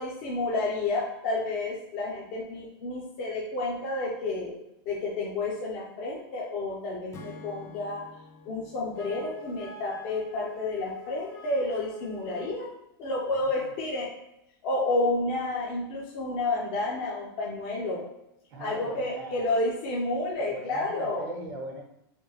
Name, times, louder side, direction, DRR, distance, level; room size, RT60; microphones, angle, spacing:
voice 1, 0.0-4.6 4.9-8.0 8.5-12.7 13.0-14.1 14.6-18.0 18.6-21.3, left 2 dB, 50° left, -4 dB, 0.7 m, -30 dB
Acoustic guitar / Strum, 7.1-10.6, left 3 dB, 20° left, 0.4 m, -50 dB
Wind instrument woodwind instrument, 8.9-12.7, left 3 dB, 65° left, 1.4 m, -44 dB
voice 2, 13.4-13.7 18.5-19.6 20.5-21.8, right 1 dB, 75° right, -1 dB, 0.8 m, -40 dB
3.4 x 2.3 x 3.0 m, 0.86 s
hypercardioid pair, 125°, 12 cm